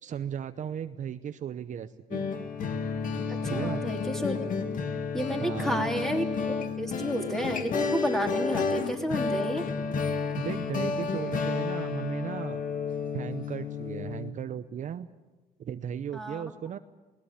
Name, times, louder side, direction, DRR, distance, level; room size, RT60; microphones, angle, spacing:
voice 1, 0.0-2.3 3.5-3.8 5.4-5.9 10.4-12.6 13.1-15.1 15.6-16.8, right 9 dB, 45° right, 10 dB, 0.7 m, -36 dB
sound 1, 2.1-14.3, left 5 dB, 50° left, 1.9 m, -31 dB
voice 2, 3.3-4.4 5.1-9.7 16.1-16.4, equal, ahead, 3 dB, 3.0 m, -31 dB
20.5 x 18.5 x 8.5 m, 1.2 s
cardioid pair, 110°, 17 cm